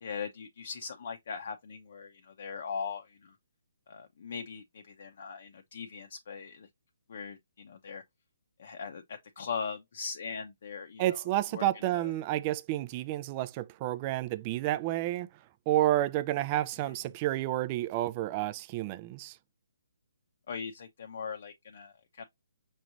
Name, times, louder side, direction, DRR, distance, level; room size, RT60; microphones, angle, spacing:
voice 1, 0.0-3.4 3.9-6.7 7.1-8.0 8.6-11.2 11.5-11.7 11.9-12.1 20.5-22.2, left 6 dB, 55° left, 0.8 m, -40 dB
voice 2, 11.0-15.3 15.7-19.4, right 14 dB, 30° right, 0.5 m, -30 dB
5.9 x 3.2 x 2.6 m
hypercardioid pair, 150°, 0 cm